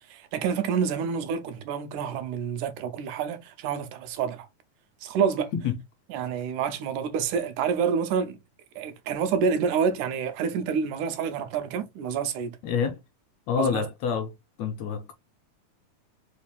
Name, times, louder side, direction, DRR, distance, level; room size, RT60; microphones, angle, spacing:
voice 1, 0.1-4.5 5.0-5.5 6.1-8.4 8.8-12.6 13.6-13.9, right 6 dB, 85° right, 2.2 m, -28 dB
voice 2, 12.6-13.0 13.5-14.3 14.6-15.1, left 7 dB, 80° left, 1.6 m, -27 dB
5.0 x 2.4 x 3.4 m
omnidirectional pair, 3.5 m